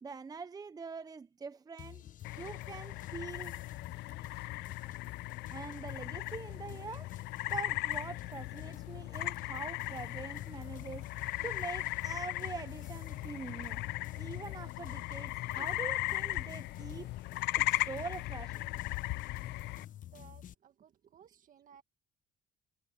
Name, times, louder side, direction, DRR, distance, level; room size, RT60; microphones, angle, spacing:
voice 1, 0.0-2.0 2.4-3.6 5.5-13.8 14.2-17.1 17.5-18.6, right 5 dB, 20° right, 0.6 m, -44 dB
sound 1, 1.8-20.5, left 12 dB, 50° left, 0.9 m, -50 dB
sound 2, 2.2-19.9, left 19 dB, 85° left, 0.5 m, -38 dB
voice 2, 20.1-21.8, right 8 dB, 50° right, 2.1 m, -59 dB
cardioid pair, 110°, 17 cm